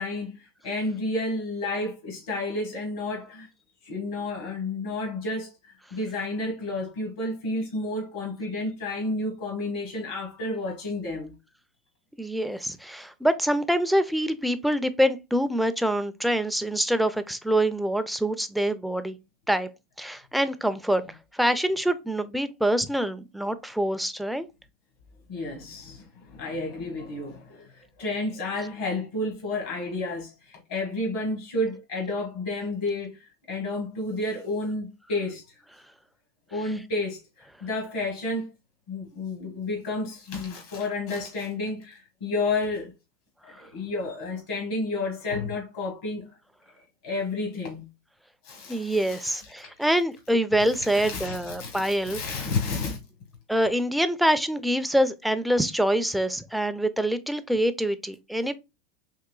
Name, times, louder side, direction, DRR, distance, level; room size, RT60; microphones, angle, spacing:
voice 1, 0.0-3.5 3.8-11.4 25.3-35.4 36.5-38.5 38.9-42.9 43.6-46.3 47.0-47.9 48.4-49.7 50.7-53.0, left 2 dB, 80° left, 1.2 m, -31 dB
voice 2, 12.2-19.2 19.5-19.7 20.0-21.0 21.3-24.5 48.7-52.2 53.5-58.5, right 1 dB, ahead, 0.4 m, -25 dB
3.8 x 3.0 x 2.3 m
supercardioid pair, 125°, 0 cm